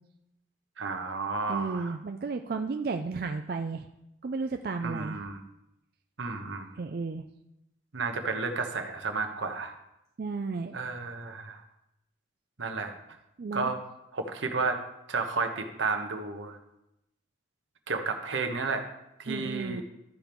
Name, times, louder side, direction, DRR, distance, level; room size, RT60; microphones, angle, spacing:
voice 1, 0.8-2.0 4.8-5.4 6.2-6.7 7.9-9.7 10.7-11.6 12.6-12.9 13.5-13.8 14.1-14.8 15.1-16.6 17.9-18.9 19.2-19.8, right 4 dB, 80° right, 5 dB, 1.1 m, -32 dB
voice 2, 1.5-3.9 4.2-5.2 6.8-7.3 10.2-10.8 13.4-13.7 19.3-19.8, right 4 dB, 50° right, 6 dB, 0.4 m, -33 dB
13.5 x 4.5 x 5.3 m, 0.87 s
head